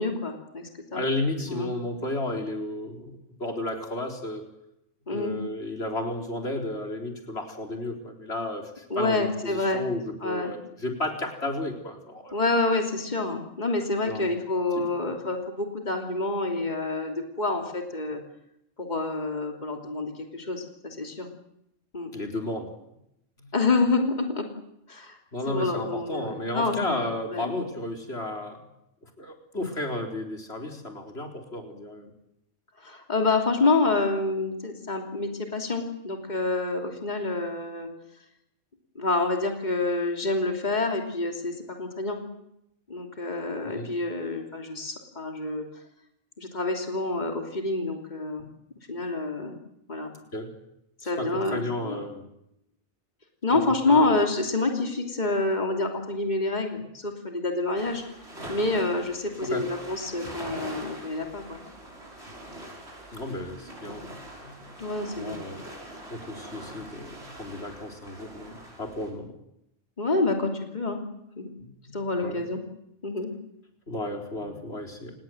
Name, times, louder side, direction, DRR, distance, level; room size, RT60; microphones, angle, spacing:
voice 1, 0.0-1.0 1.5-1.7 5.1-5.3 8.9-9.8 10.2-10.5 12.3-18.2 18.8-21.3 21.9-22.1 23.5-24.5 24.9-25.2 25.5-27.5 32.8-37.9 38.9-42.2 42.9-45.6 46.4-48.5 48.9-49.6 49.9-50.1 51.0-52.0 53.4-58.0 58.5-61.6 64.8-65.4 70.0-71.0 71.4-71.5 71.9-72.6 73.0-73.3, left 3 dB, 35° left, 3 dB, 3.1 m, -27 dB
voice 2, 0.9-3.1 3.4-4.4 5.1-12.3 14.1-14.3 22.1-22.7 23.4-23.5 25.3-28.6 29.2-32.1 43.6-43.9 50.3-50.5 51.0-52.2 53.9-54.0 59.4-59.6 63.1-64.1 64.4-64.5 65.2-65.6 66.1-69.3 71.6-71.7 72.2-72.4 73.9-75.1, left 1 dB, 55° left, 3 dB, 4.3 m, -33 dB
sound 1, 57.8-69.1, right 1 dB, 55° right, 7.3 m, -43 dB
29.0 x 19.5 x 7.9 m, 0.81 s
omnidirectional pair, 1.3 m